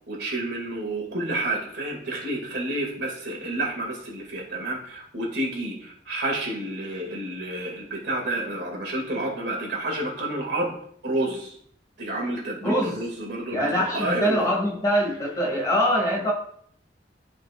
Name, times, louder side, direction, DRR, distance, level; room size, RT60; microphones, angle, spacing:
voice 1, 0.1-10.7 11.0-11.5 12.0-14.5, right 1 dB, 70° right, -2 dB, 2.4 m, -30 dB
voice 2, 12.6-13.0 13.5-16.3, equal, 20° left, -2 dB, 2.3 m, -23 dB
12.0 x 5.1 x 2.5 m, 0.64 s
head